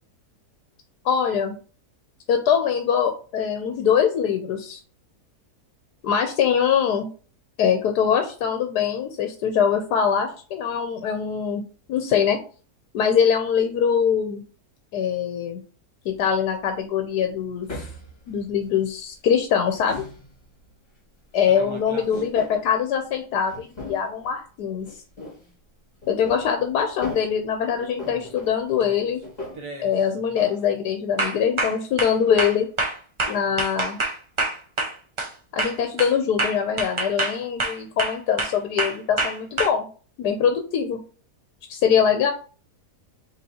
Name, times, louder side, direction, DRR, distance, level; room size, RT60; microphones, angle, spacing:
voice 1, 1.0-1.6 2.3-4.8 6.0-7.1 7.6-11.6 11.9-12.4 12.9-14.4 14.9-15.6 16.0-17.7 18.3-20.0 21.3-24.9 26.1-29.2 29.8-32.7 33.3-34.0 35.5-39.9 40.2-41.0 41.7-42.3, left 7 dB, 80° left, 5 dB, 1.2 m, -23 dB
sound 1, 16.0-16.3 17.6-19.2 19.6-20.6 21.7-22.8 23.5-24.3 24.8-25.5 26.0-27.4 27.8-29.6, left 2 dB, 25° left, 2.0 m, -38 dB
sound 2, 21.5-22.2 26.4-26.5 28.0-28.3 28.8-29.1 29.6-29.9 30.3-30.6 31.2-35.3 35.6-39.7, right 2 dB, 40° right, 0.4 m, -27 dB
5.3 x 3.5 x 2.8 m, 0.38 s
omnidirectional pair, 1.7 m